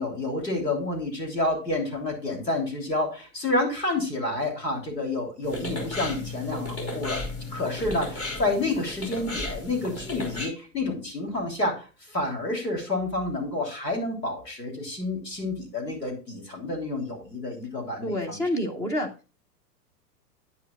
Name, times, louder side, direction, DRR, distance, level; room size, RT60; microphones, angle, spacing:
voice 1, 0.0-7.2 7.5-18.4, left 2 dB, 80° left, 1 dB, 3.4 m, -29 dB
sound 1, 5.4-10.5, left 2 dB, 25° left, 3.5 m, -34 dB
voice 2, 18.0-19.3, equal, 5° left, 4 dB, 0.5 m, -28 dB
9.8 x 9.5 x 2.3 m, 0.33 s
figure-of-eight pair, 105°, 49 cm